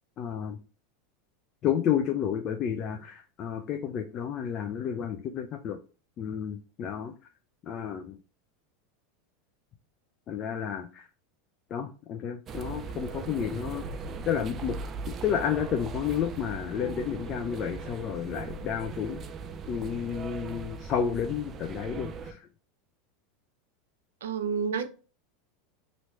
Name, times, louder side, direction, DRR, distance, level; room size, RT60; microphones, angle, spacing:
voice 1, 0.2-0.6 1.6-5.8 6.2-7.1 7.6-8.2 10.3-11.1 11.7-13.8 14.2-14.8 15.2-19.2 19.7-22.5, left 8 dB, 40° left, 0.5 m, -31 dB
sound 1, 12.5-22.3, right 4 dB, 35° right, 0.4 m, -39 dB
voice 2, 24.2-24.9, right 6 dB, 90° right, 0.5 m, -29 dB
3.0 x 2.7 x 3.2 m
hypercardioid pair, 105°, 0 cm